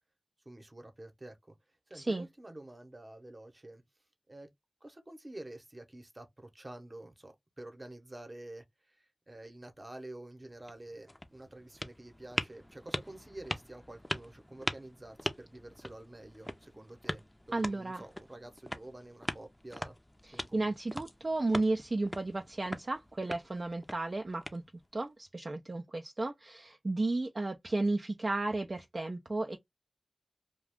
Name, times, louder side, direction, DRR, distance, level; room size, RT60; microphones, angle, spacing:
voice 1, 0.4-1.5 1.9-3.8 4.3-4.5 4.8-20.0 20.3-20.8, right 1 dB, 35° right, 0.9 m, -49 dB
voice 2, 1.9-2.3 17.5-18.0 20.2-24.6 24.9-29.6, right 2 dB, 50° right, 0.4 m, -33 dB
sound 1, 10.5-25.0, left 1 dB, 15° left, 0.5 m, -42 dB
2.4 x 2.2 x 3.4 m
cardioid pair, 45°, 0 cm